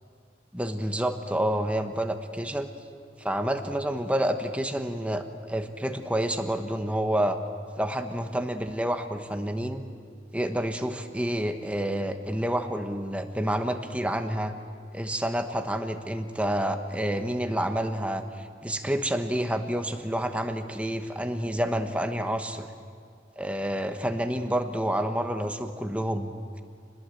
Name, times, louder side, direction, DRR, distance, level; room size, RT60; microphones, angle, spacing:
voice 1, 0.5-2.7 3.2-7.4 7.8-9.8 10.3-14.5 14.9-22.7 23.4-26.3, right 1 dB, 5° right, 6 dB, 1.1 m, -29 dB
26.5 x 20.0 x 7.9 m, 2.2 s
head